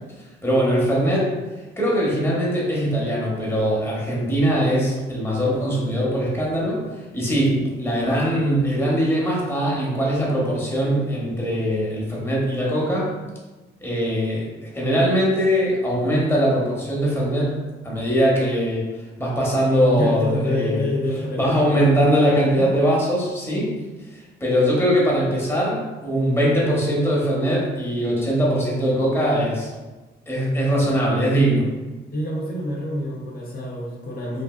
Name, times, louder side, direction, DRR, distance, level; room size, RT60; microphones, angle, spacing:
voice 1, 0.4-1.3 1.8-13.1 13.8-17.6 17.8-18.9 19.2-20.8 21.3-23.7 24.1-29.7 30.3-31.7, equal, 10° left, -5 dB, 1.1 m, -21 dB
voice 2, 20.0-21.8 22.5-22.7 32.1-34.4, left 1 dB, 50° left, -3 dB, 0.9 m, -27 dB
3.2 x 2.6 x 2.4 m, 1.2 s
cardioid pair, 90°, 20 cm